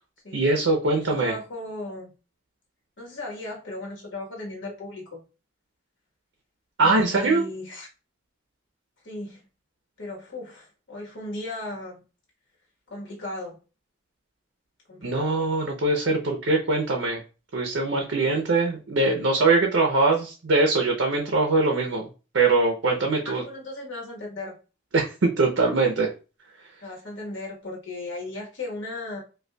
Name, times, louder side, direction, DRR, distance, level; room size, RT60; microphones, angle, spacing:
voice 1, 0.3-1.3 6.8-7.4 15.0-17.2 17.5-22.1 22.3-23.4 24.9-26.1, right 3 dB, 75° right, 0.6 m, -22 dB
voice 2, 1.1-2.1 3.0-5.2 6.8-7.9 9.0-9.4 10.0-12.0 12.9-13.6 14.9-15.5 23.2-24.6 26.8-29.2, left 2 dB, 70° left, 1.3 m, -36 dB
5.0 x 2.3 x 2.2 m
head